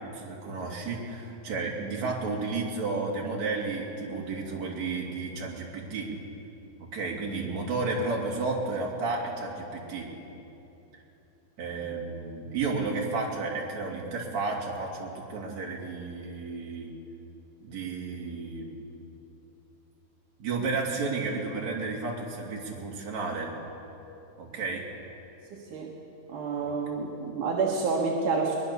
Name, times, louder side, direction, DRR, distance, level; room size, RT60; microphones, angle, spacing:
voice 1, 0.0-6.1 6.8-10.1 11.6-16.9 17.6-18.7 20.4-23.5 24.4-24.9 26.6-26.7, right 3 dB, 60° right, -2 dB, 4.0 m, -32 dB
voice 2, 25.5-25.9 26.3-28.6, right 4 dB, 80° right, -2 dB, 3.2 m, -29 dB
23.0 x 20.5 x 7.0 m, 3.0 s
omnidirectional pair, 3.6 m